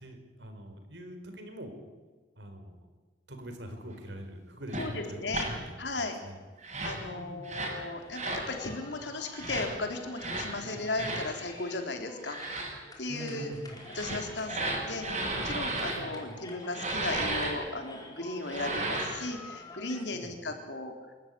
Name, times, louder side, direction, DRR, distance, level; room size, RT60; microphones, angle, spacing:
voice 1, 0.0-1.7 2.4-2.7 3.3-6.4 7.1-7.7 10.6-10.8 13.1-13.8 15.9-16.4 20.1-20.4, equal, 70° right, 6 dB, 4.6 m, -44 dB
sound 1, 4.7-4.9 5.3-5.5 6.6-7.0 7.4-7.8 8.1-8.4 9.3-9.7 10.2-10.5 10.9-11.3 12.2-12.7 13.8-16.0 16.7-17.5 18.4-19.2, right 2 dB, 40° right, 7.0 m, -33 dB
voice 2, 4.8-5.5 5.8-6.2 6.8-12.4 13.0-13.5 13.9-15.1 15.4-20.9, left 2 dB, 70° left, 4 dB, 3.7 m, -36 dB
sound 2, 8.0-20.0, left 2 dB, 20° left, 4.6 m, -48 dB
27.5 x 14.0 x 9.7 m, 1.3 s
head